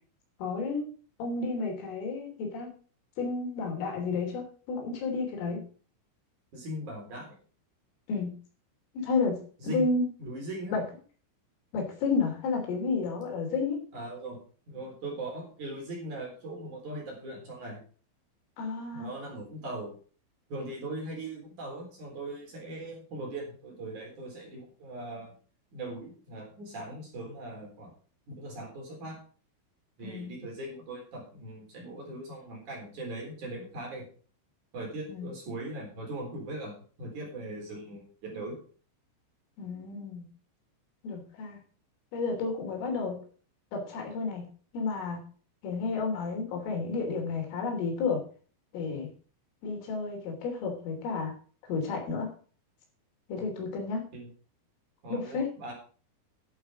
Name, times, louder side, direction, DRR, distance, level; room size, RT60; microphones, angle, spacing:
voice 1, 0.4-0.9 1.2-2.7 3.2-5.6 8.1-8.4 9.0-9.4 9.7-10.1 10.7-10.8 11.7-13.8 18.6-19.1 30.0-30.3 35.1-35.3 39.6-40.3 41.0-41.6 42.1-43.2 43.7-44.5 44.7-45.2 45.6-48.2 48.7-49.1 49.6-51.3 51.7-52.3 53.3-54.0 55.1-55.5, left 4 dB, 80° left, 2 dB, 5.7 m, -31 dB
voice 2, 6.5-7.4 9.6-9.9 10.2-10.8 13.9-14.4 14.7-17.8 18.9-20.0 20.5-25.4 25.7-27.9 28.3-29.2 30.0-34.1 34.7-38.6 53.4-53.5 54.1-54.3 55.0-55.7, right 1 dB, 40° right, -1 dB, 4.9 m, -40 dB
11.0 x 8.4 x 5.1 m, 0.40 s
omnidirectional pair, 5.7 m